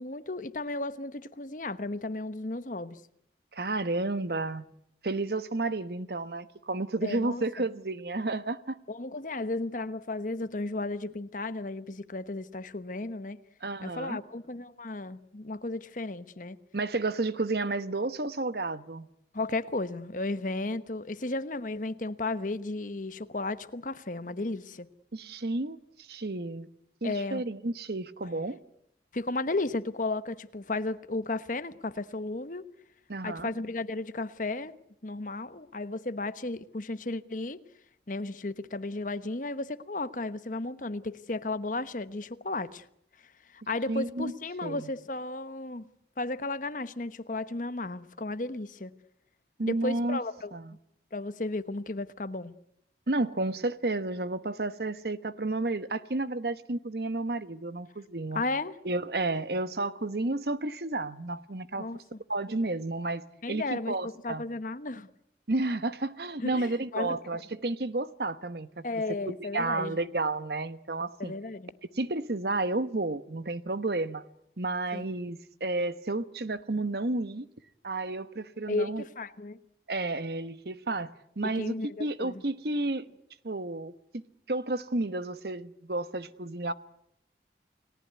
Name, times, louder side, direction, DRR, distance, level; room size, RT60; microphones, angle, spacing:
voice 1, 0.0-3.0 7.0-7.4 8.9-13.4 13.8-16.6 19.3-24.9 27.0-27.4 29.1-32.6 33.2-34.8 35.0-37.6 38.1-42.9 43.2-45.9 46.2-48.9 49.6-50.5 51.1-52.6 58.3-58.8 61.8-62.0 63.4-65.1 66.4-67.2 68.8-70.0 71.2-71.7 74.9-75.0 78.7-79.6 81.4-82.4, left 2 dB, 45° left, 1.1 m, -34 dB
voice 2, 3.5-4.6 5.0-8.8 13.6-14.2 16.7-19.1 25.1-26.7 27.0-28.6 33.1-33.5 43.9-44.3 44.6-44.9 49.6-50.2 50.5-50.8 53.1-58.4 58.8-61.9 62.3-64.4 65.5-68.8 69.5-71.3 71.9-74.2 74.6-77.5 77.8-79.0 79.9-81.7 82.0-83.1 83.4-84.2 84.5-86.7, right 2 dB, 60° right, 1.1 m, -31 dB
29.5 x 18.0 x 9.5 m
head